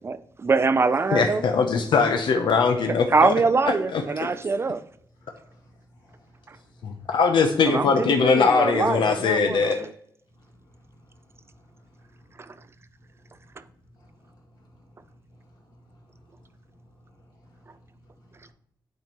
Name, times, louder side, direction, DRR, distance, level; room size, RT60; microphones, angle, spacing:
voice 1, 0.0-1.4 3.1-4.8 7.7-9.9, right 4 dB, 30° right, 0.3 m, -23 dB
voice 2, 1.1-3.3 3.9-4.3 6.8-9.8, left 5 dB, 85° left, 0.6 m, -21 dB
voice 3, 5.2-6.2 6.7-7.0 10.3-10.5 10.7-12.2 13.2-13.3 14.0-16.5 16.7-18.3, equal, 60° left, 2.1 m, -56 dB
9.3 x 4.3 x 2.9 m
wide cardioid pair, 135°, 8 cm